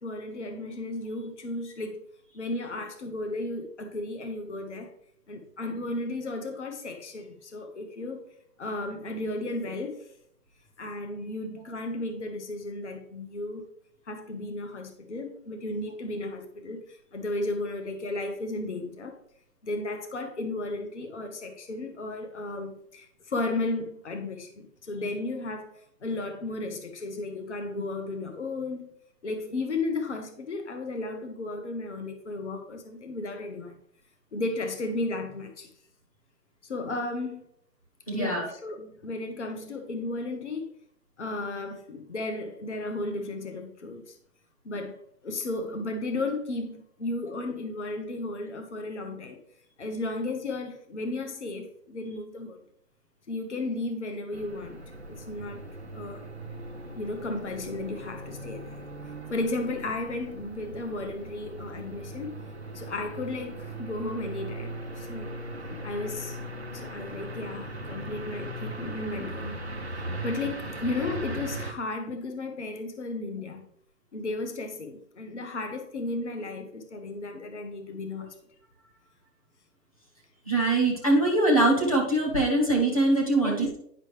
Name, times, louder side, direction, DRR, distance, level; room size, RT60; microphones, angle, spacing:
voice 1, 0.0-2.0 2.3-4.9 5.3-8.2 8.6-10.1 10.8-13.7 14.1-19.2 19.6-25.7 26.0-28.9 29.2-33.8 34.3-35.7 36.6-37.4 38.1-40.7 41.2-44.2 44.6-45.0 45.2-49.4 49.8-52.6 53.3-54.8 55.1-55.6 55.9-56.2 57.0-58.8 59.3-62.3 62.7-65.3 65.8-66.4 66.7-69.6 70.2-73.7 74.1-78.3 83.4-83.6, left 2 dB, 45° left, 1.0 m, -34 dB
voice 2, 38.1-38.5 80.5-83.8, right 2 dB, 20° left, 1.0 m, -23 dB
sound 1, 54.3-71.7, right 1 dB, 45° right, 0.4 m, -39 dB
9.6 x 5.6 x 3.2 m
hypercardioid pair, 180°, 49 cm